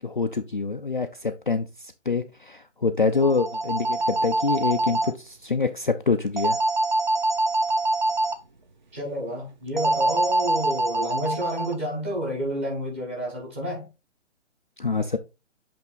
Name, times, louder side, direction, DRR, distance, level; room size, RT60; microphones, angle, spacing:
voice 1, 0.0-6.6 14.8-15.2, left 4 dB, 45° left, 0.4 m, -26 dB
sound 1, 3.1-5.1 6.4-8.4 9.8-11.7, right 2 dB, 40° right, 0.8 m, -24 dB
voice 2, 8.9-13.9, equal, 10° right, 1.2 m, -30 dB
8.1 x 3.4 x 3.7 m
hypercardioid pair, 180°, 37 cm